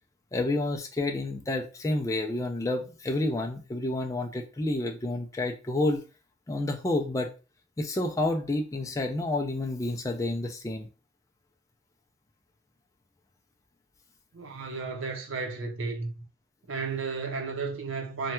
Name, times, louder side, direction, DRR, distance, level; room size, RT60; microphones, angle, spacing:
voice 1, 0.3-6.0 6.5-7.3 7.8-10.9, left 2 dB, 15° left, 0.3 m, -29 dB
voice 2, 14.3-16.2 16.6-18.3, right 4 dB, 85° right, 0.7 m, -33 dB
3.1 x 2.2 x 2.9 m
head